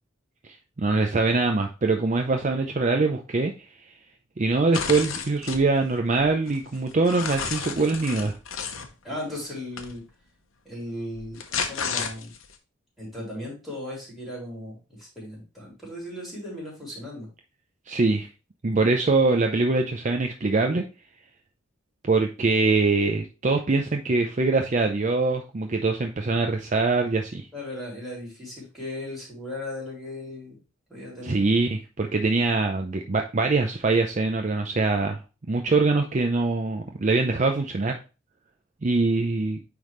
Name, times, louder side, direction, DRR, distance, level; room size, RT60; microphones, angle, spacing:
voice 1, 0.8-3.5 4.4-8.3 17.9-18.3 18.6-20.9 22.0-27.5 31.2-35.2 35.5-38.0 38.8-39.6, right 3 dB, 40° right, 4 dB, 0.6 m, -23 dB
sound 1, 4.7-5.6 6.2-8.9 9.8-9.9 11.1-12.5, left 6 dB, 85° left, 0.9 m, -32 dB
voice 2, 9.0-10.0 10.6-12.3 13.0-17.3 27.5-30.6 30.9-31.4, left 1 dB, ahead, -4 dB, 3.5 m, -37 dB
9.4 x 3.5 x 3.1 m, 0.31 s
head